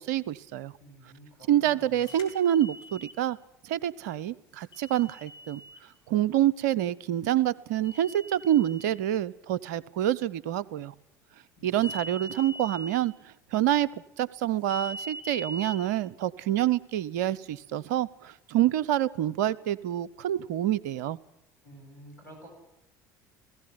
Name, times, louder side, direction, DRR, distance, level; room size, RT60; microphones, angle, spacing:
voice 1, 0.0-0.7 1.5-3.4 3.6-5.6 6.1-10.9 11.6-13.1 13.5-13.9 14.2-21.2, right 12 dB, 70° right, 21 dB, 0.7 m, -27 dB
voice 2, 0.8-2.0 21.6-22.5, right 1 dB, 85° left, 2 dB, 7.9 m, -51 dB
sound 1, 2.0-3.2 4.7-5.8 7.8-8.9 11.8-12.9 14.7-15.8, right 1 dB, 45° left, 4.4 m, -41 dB
18.0 x 16.0 x 9.6 m, 0.86 s
figure-of-eight pair, 65°, 10 cm